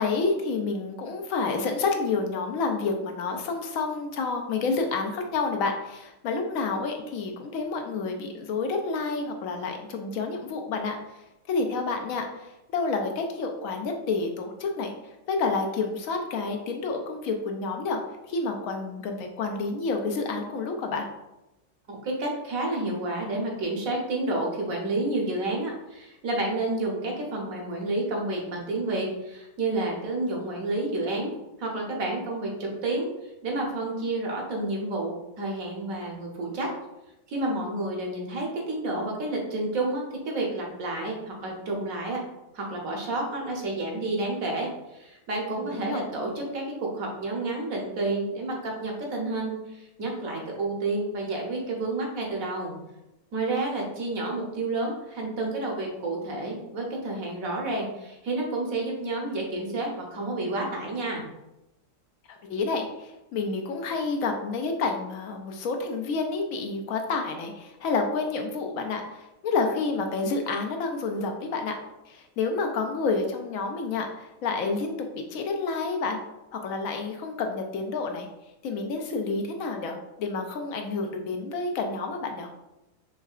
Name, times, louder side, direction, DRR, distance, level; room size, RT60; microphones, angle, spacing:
voice 1, 0.0-14.9 15.3-18.0 18.3-21.1 45.7-46.0 62.3-71.8 72.0-76.2 76.5-78.3 78.6-82.5, left 4 dB, 70° left, 3 dB, 0.9 m, -29 dB
voice 2, 21.9-31.3 31.6-33.1 33.4-36.7 37.3-42.2 42.5-46.6 46.9-52.7 53.3-61.2, right 2 dB, 70° right, -1 dB, 1.3 m, -30 dB
4.6 x 3.1 x 2.4 m, 0.94 s
omnidirectional pair, 1.6 m